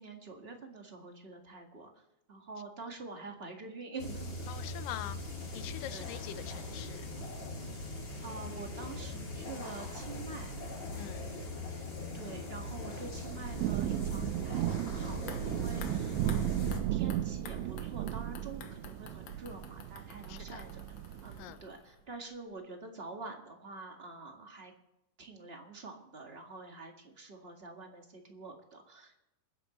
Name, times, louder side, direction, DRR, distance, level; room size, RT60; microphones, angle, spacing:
voice 1, 0.0-2.0 2.3-4.4 5.9-6.1 8.2-10.5 12.1-20.8 21.2-24.7 25.2-29.2, right 3 dB, 25° right, 2 dB, 1.3 m, -46 dB
sound 1, 4.0-16.8, left 2 dB, 35° left, 3.5 m, -41 dB
voice 2, 4.5-5.2 5.5-7.1 11.0-11.2 20.3-20.6 21.4-21.6, left 12 dB, 80° left, 13 dB, 2.4 m, -43 dB
Thunder / Rain, 13.0-21.6, right 13 dB, 80° right, 1.7 m, -35 dB
sound 2, 15.3-22.2 22.5-22.6, left 7 dB, 60° left, 2.0 m, -52 dB
27.5 x 10.5 x 3.1 m, 0.92 s
omnidirectional pair, 3.9 m